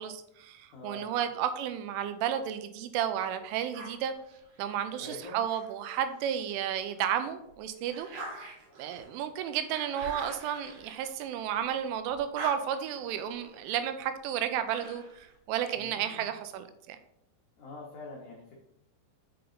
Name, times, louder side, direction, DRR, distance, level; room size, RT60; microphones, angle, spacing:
voice 1, 0.0-4.1 4.6-8.5 8.8-17.0, right 9 dB, 90° right, 9 dB, 3.1 m, -32 dB
voice 2, 0.7-1.3 5.0-5.4 15.7-16.2 17.6-18.6, left 1 dB, 80° left, -3 dB, 1.7 m, -45 dB
sound 1, 3.7-6.4 6.9-11.7 12.1-15.4, right 2 dB, 65° right, 3.0 m, -46 dB
6.8 x 5.6 x 3.9 m, 0.76 s
omnidirectional pair, 5.5 m